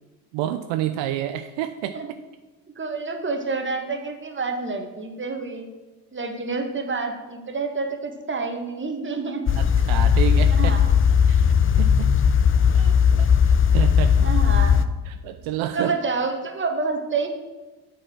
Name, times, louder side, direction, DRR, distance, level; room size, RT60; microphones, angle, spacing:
voice 1, 0.3-2.0 9.6-10.7 11.3-12.1 12.7-13.3 13.7-14.3 15.0-16.0, right 12 dB, 65° right, 9 dB, 0.7 m, -29 dB
voice 2, 2.8-5.7 6.1-9.4 10.6-11.0 14.2-14.8 15.7-17.3, right 4 dB, 25° right, 5 dB, 1.7 m, -28 dB
sound 1, 9.5-14.8, left 7 dB, 25° left, 0.6 m, -17 dB
8.2 x 6.5 x 6.0 m, 1.2 s
hypercardioid pair, 75°, 50 cm